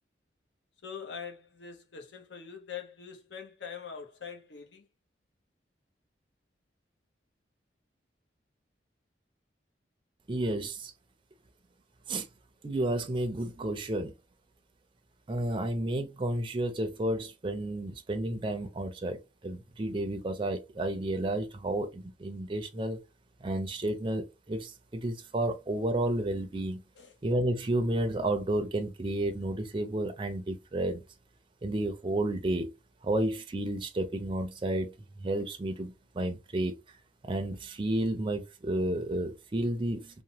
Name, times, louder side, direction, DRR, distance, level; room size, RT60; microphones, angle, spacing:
voice 1, 0.8-4.8 27.0-27.1, left 7 dB, 75° left, 0.7 m, -43 dB
voice 2, 10.3-10.9 12.1-12.3 12.6-14.1 15.3-23.0 23.4-26.8 27.2-31.0 31.6-32.7 33.0-36.8 37.2-40.2, right 1 dB, 25° right, 0.4 m, -31 dB
2.9 x 2.0 x 2.7 m
head